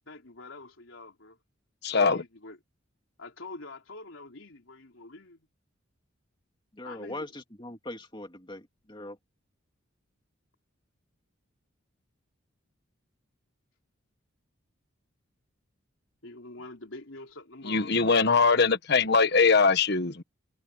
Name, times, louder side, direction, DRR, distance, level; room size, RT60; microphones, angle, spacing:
voice 1, 0.1-1.4 1.9-2.6 3.2-5.5 6.8-7.3 16.2-17.9, left 2 dB, 75° left, 3.7 m, -45 dB
voice 2, 1.8-2.2 17.7-20.2, left 4 dB, 55° left, 1.3 m, -22 dB
voice 3, 6.7-9.2, left 1 dB, 25° left, 2.5 m, -41 dB
head